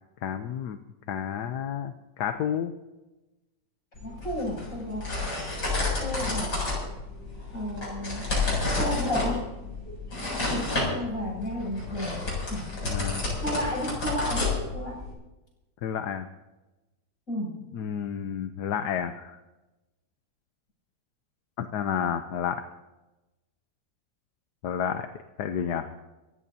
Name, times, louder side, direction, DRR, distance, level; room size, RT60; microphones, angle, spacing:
voice 1, 0.2-0.8 1.1-2.7 10.2-10.3 12.8-13.3 15.8-16.3 17.7-19.4 21.6-22.6 24.6-25.1 25.4-25.9, left 8 dB, 65° left, 7 dB, 1.3 m, -30 dB
sound 1, 4.0-15.1, left 3 dB, 85° left, 8.4 m, -30 dB
voice 2, 4.0-5.1 6.0-6.6 7.5-8.3 8.8-9.5 10.1-12.2 12.5-12.7 13.4-15.0 17.3-17.6, left 1 dB, 45° left, -3 dB, 8.4 m, -32 dB
27.0 x 16.0 x 2.9 m, 1.0 s
omnidirectional pair, 2.0 m